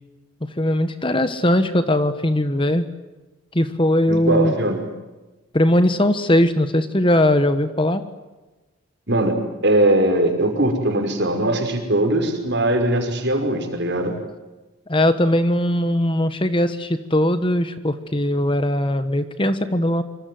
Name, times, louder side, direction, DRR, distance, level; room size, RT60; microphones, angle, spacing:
voice 1, 0.6-2.8 3.5-4.5 5.5-8.0 14.9-20.0, left 1 dB, 25° left, 11 dB, 1.4 m, -19 dB
voice 2, 4.1-4.8 9.1-9.4 9.6-14.1, right 1 dB, 50° right, 5 dB, 5.5 m, -20 dB
26.0 x 25.5 x 7.9 m, 1.1 s
head